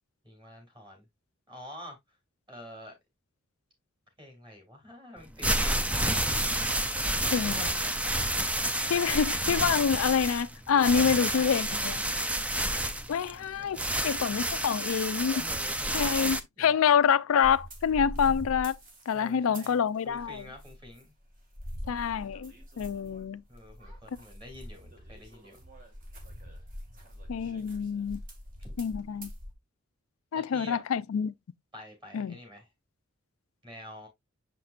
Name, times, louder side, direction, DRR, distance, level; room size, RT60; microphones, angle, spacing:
voice 1, 0.2-1.0 1.5-2.0 2.5-2.9 4.2-5.7 7.3-8.0 10.9-11.8 13.6-14.2 15.3-16.9 19.1-21.1 23.5-25.6 27.4-27.5 28.6-28.7 30.3-30.8 31.7-32.7 33.6-34.1, left 1 dB, 25° right, 2.8 m, -48 dB
sound 1, 5.2-16.4, right 1 dB, 5° right, 0.4 m, -29 dB
voice 2, 7.3-7.7 8.9-12.0 13.1-15.4 15.9-18.8 19.1-20.4 21.9-23.4 27.3-28.2 28.8-29.3 30.3-31.3 32.1-32.4, left 7 dB, 75° left, 0.4 m, -27 dB
sound 2, 17.4-19.8 20.1-21.0 21.3-29.5, equal, 40° right, 1.9 m, -43 dB
6.7 x 5.8 x 2.4 m
head